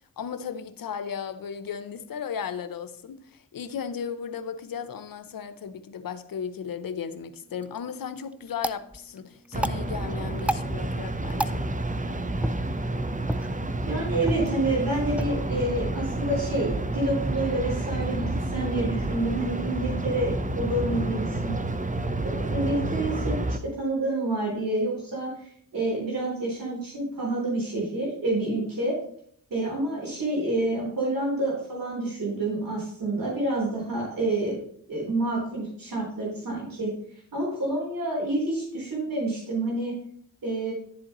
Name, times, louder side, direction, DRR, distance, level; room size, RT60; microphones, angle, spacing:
voice 1, 0.0-11.7, left 7 dB, 80° left, 0.7 m, -35 dB
sound 1, 7.4-17.5, right 1 dB, 5° right, 0.4 m, -36 dB
sound 2, 9.5-23.6, right 2 dB, 25° right, 0.8 m, -29 dB
voice 2, 13.9-21.5 22.2-28.9 29.5-34.6 34.9-36.9 37.3-40.0 40.4-40.7, right 2 dB, 75° right, 3.8 m, -28 dB
11.0 x 7.5 x 3.0 m
cardioid pair, 50°, 34 cm